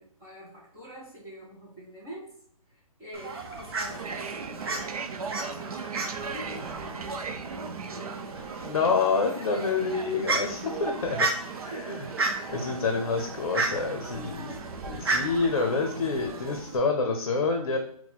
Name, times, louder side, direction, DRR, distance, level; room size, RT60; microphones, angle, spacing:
voice 1, 0.0-2.4 2.7-9.1 9.3-9.9 11.7-12.1, right 1 dB, 10° right, -6 dB, 0.5 m, -46 dB
Fowl, 3.1-16.8, right 3 dB, 40° right, 0.8 m, -34 dB
sound 1, 3.9-16.6, right 5 dB, 85° right, 0.5 m, -39 dB
voice 2, 8.6-11.3 11.6-12.0 12.5-17.8, left 4 dB, 55° left, 4 dB, 0.6 m, -27 dB
4.1 x 2.1 x 4.2 m, 0.66 s
hypercardioid pair, 175°, 19 cm